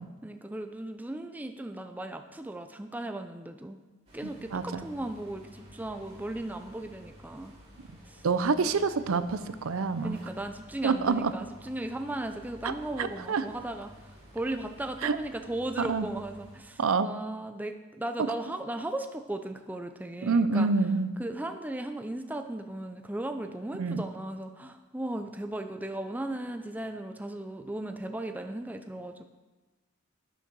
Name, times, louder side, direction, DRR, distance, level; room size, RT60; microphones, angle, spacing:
voice 1, 0.2-3.8 4.1-7.5 8.1-8.3 10.0-13.9 14.3-20.7 21.2-29.2, right 1 dB, 10° right, 6 dB, 0.4 m, -36 dB
sound 1, 4.1-16.6, equal, 25° right, 3.0 m, -53 dB
voice 2, 4.5-4.8 8.2-10.2 10.8-11.3 12.6-12.7 13.0-13.4 15.0-15.2 15.8-16.1 16.8-17.1 20.2-21.1 23.8-24.0, right 4 dB, 75° right, 13 dB, 0.5 m, -27 dB
9.3 x 6.5 x 6.1 m, 1.2 s
head